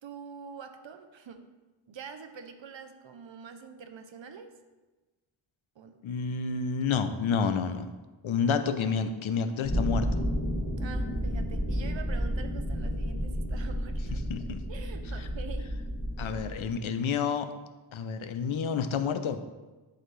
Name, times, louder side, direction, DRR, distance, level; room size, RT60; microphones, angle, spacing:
voice 1, 0.0-1.4 1.9-4.5 5.8-6.0 10.8-14.2 14.7-15.7 16.2-16.3, right 6 dB, 70° right, 8 dB, 0.8 m, -45 dB
voice 2, 6.0-7.9 8.2-10.1 14.3-14.6 16.2-17.5 17.9-19.4, left 6 dB, 85° left, 9 dB, 0.6 m, -29 dB
sound 1, 9.6-16.7, equal, 30° left, 1.2 m, -31 dB
11.0 x 4.0 x 3.2 m, 1.2 s
wide cardioid pair, 105°, 47 cm